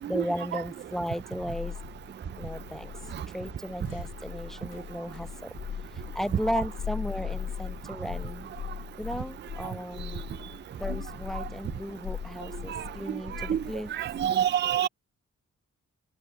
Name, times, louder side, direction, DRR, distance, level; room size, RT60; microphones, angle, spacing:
voice 1, 0.0-1.7 2.4-2.9 3.3-5.5 6.1-8.5 9.0-10.2 10.8-13.9, equal, ahead, 0.8 m, -35 dB
sound 1, 0.8-14.3, left 8 dB, 85° left, 1.2 m, -40 dB
voice 2, 14.0-14.9, right 10 dB, 40° right, 0.4 m, -26 dB
wide cardioid pair, 105°, 30 cm